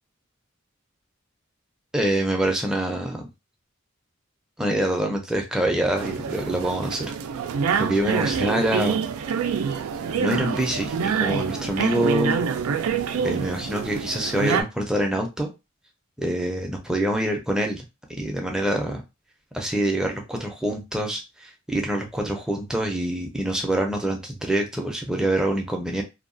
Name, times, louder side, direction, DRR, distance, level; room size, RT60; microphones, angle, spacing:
voice 1, 1.9-3.3 4.6-7.1 7.8-9.1 10.2-12.4 13.2-15.5 16.2-17.8 18.2-19.0 19.5-26.0, right 1 dB, 5° right, 1 dB, 0.5 m, -25 dB
sound 1, 6.0-14.6, right 6 dB, 90° right, 0.4 m, -26 dB
2.7 x 2.2 x 2.5 m, 0.25 s
head